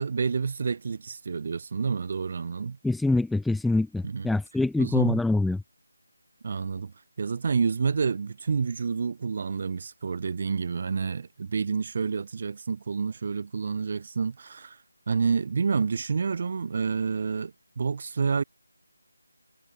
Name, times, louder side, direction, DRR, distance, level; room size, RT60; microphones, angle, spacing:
voice 1, 0.0-2.8 4.0-4.3 4.8-5.2 6.4-14.8 15.1-18.4, right 5 dB, 30° right, 0.8 m, -29 dB
voice 2, 2.8-5.6, left 2 dB, ahead, 0.4 m, -25 dB
figure-of-eight pair, 175°, 0 cm